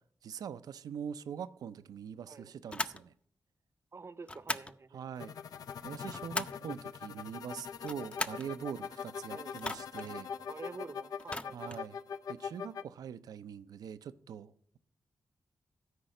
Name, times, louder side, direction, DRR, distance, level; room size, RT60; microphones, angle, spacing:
voice 1, 0.2-3.1 4.9-5.3 5.8-10.3 11.5-12.0 12.3-14.8, right 8 dB, 85° right, 14 dB, 0.4 m, -43 dB
sound 1, 2.7-3.0 4.3-4.8 5.8-6.7 7.7-8.5 9.6-10.1 11.2-11.9, left 1 dB, 20° left, 0.5 m, -39 dB
voice 2, 3.9-5.0 9.3-9.6 10.4-11.8, right 4 dB, 45° right, 16 dB, 0.6 m, -48 dB
sound 2, 5.2-12.8, left 7 dB, 80° left, 0.4 m, -42 dB
13.0 x 4.8 x 6.4 m, 0.63 s
cardioid pair, 55°, 6 cm